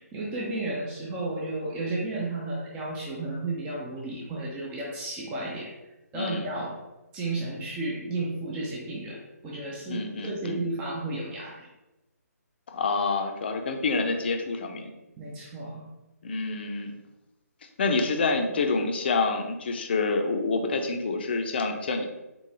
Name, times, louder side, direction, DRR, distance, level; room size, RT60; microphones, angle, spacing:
voice 1, 0.0-5.7 6.1-6.8 7.1-11.7 15.2-15.8, right 2 dB, 10° right, -4 dB, 0.5 m, -33 dB
voice 2, 6.1-6.5 9.9-10.6 12.7-14.9 16.2-16.9 17.8-22.0, left 3 dB, 40° left, 4 dB, 0.6 m, -27 dB
3.8 x 3.7 x 3.2 m, 1.0 s
figure-of-eight pair, 145°, 9 cm